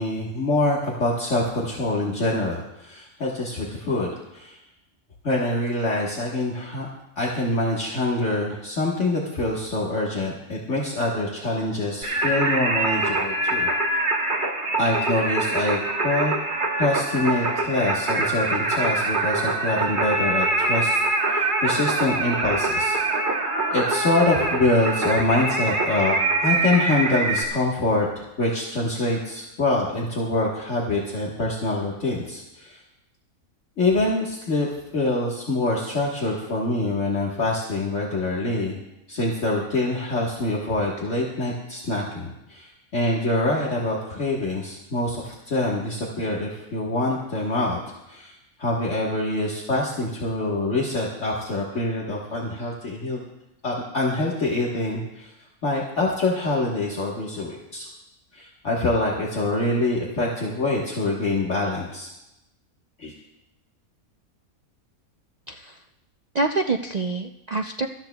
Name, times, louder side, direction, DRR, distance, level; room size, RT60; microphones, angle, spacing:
voice 1, 0.0-4.6 5.2-6.9 7.2-13.7 14.8-16.4 16.8-21.0 21.3-23.0 23.7-32.8 33.8-38.8 39.1-47.8 48.1-53.2 53.6-55.3 55.6-57.9 58.3-62.1 63.0-63.1, left 2 dB, 55° left, -4 dB, 1.8 m, -25 dB
Singing, 12.0-27.4, right 2 dB, 35° right, 1.3 m, -24 dB
voice 2, 65.5-65.8 66.3-67.9, right 3 dB, 85° right, 4 dB, 0.3 m, -26 dB
24.0 x 13.5 x 2.3 m, 0.90 s
omnidirectional pair, 1.5 m